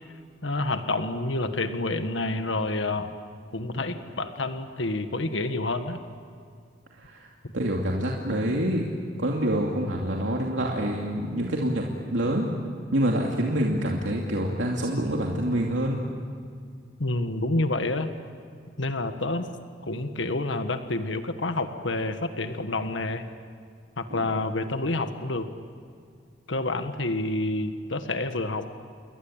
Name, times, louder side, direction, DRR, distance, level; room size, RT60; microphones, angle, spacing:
voice 1, 0.4-3.1 3.5-6.0 17.0-18.1 18.8-19.5 19.8-23.2 24.0-25.5 26.5-28.7, left 2 dB, 85° left, 8 dB, 1.6 m, -28 dB
voice 2, 7.0-7.3 7.5-8.8 9.2-12.5 12.9-16.0, right 1 dB, 85° right, -1 dB, 2.7 m, -26 dB
29.5 x 22.5 x 8.9 m, 2.3 s
head